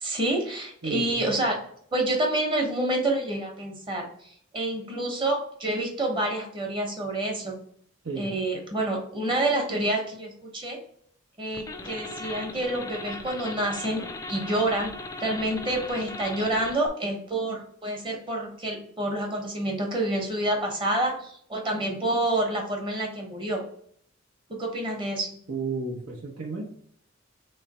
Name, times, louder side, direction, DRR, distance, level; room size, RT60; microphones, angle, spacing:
voice 1, 0.0-1.5 1.9-7.6 8.2-10.8 11.4-14.0 14.3-14.9 15.2-23.6 24.5-25.3, right 1 dB, 25° right, 1 dB, 1.0 m, -28 dB
voice 2, 0.8-1.2 8.0-8.3 25.5-26.6, right 4 dB, 80° right, -1 dB, 0.8 m, -32 dB
sound 1, 11.5-16.9, left 2 dB, 15° left, 0.4 m, -38 dB
3.3 x 3.2 x 4.0 m, 0.63 s
head